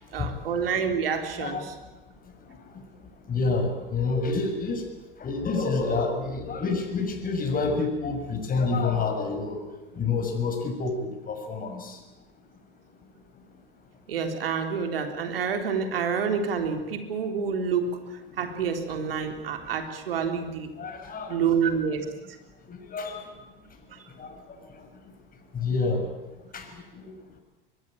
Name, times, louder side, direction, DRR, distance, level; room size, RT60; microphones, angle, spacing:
voice 1, 0.1-1.7 14.1-18.0 18.4-20.7 21.3-22.1, right 6 dB, 75° right, 6 dB, 3.6 m, -28 dB
voice 2, 1.4-1.7 3.3-4.8 5.2-9.6 10.0-12.0 20.8-21.5 22.7-23.3 24.2-24.3 25.5-26.0 26.5-26.7 27.0-27.1, left 4 dB, 30° left, 4 dB, 6.4 m, -28 dB
23.5 x 22.0 x 8.9 m, 1.1 s
figure-of-eight pair, 75°, 29 cm